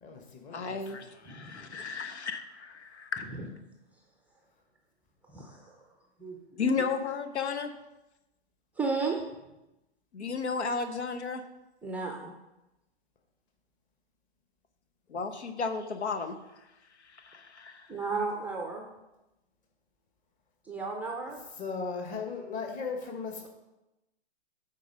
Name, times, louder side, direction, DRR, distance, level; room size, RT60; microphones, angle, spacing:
voice 1, 0.0-1.0 21.6-23.5, left 5 dB, 25° left, 3 dB, 1.3 m, -37 dB
voice 2, 0.5-3.3 6.6-7.7 10.1-11.4 15.1-16.3 17.0-17.9, left 5 dB, 85° left, 8 dB, 1.0 m, -33 dB
voice 3, 1.3-1.7 3.4-3.5 5.3-5.8 6.2-6.7 8.8-9.2 11.8-12.3 17.9-18.9 20.6-21.4, right 4 dB, 5° right, 1 dB, 0.5 m, -34 dB
8.4 x 4.2 x 5.4 m, 0.97 s
hypercardioid pair, 130°, 33 cm